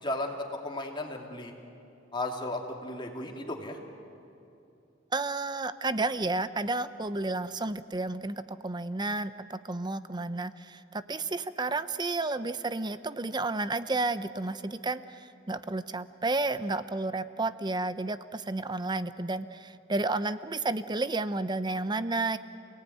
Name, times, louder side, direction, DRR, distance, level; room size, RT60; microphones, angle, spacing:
voice 1, 0.0-1.5 2.1-3.8, left 1 dB, 25° left, 2 dB, 2.7 m, -35 dB
voice 2, 5.1-22.4, right 2 dB, 25° right, 13 dB, 0.7 m, -31 dB
28.5 x 18.5 x 9.3 m, 2.8 s
head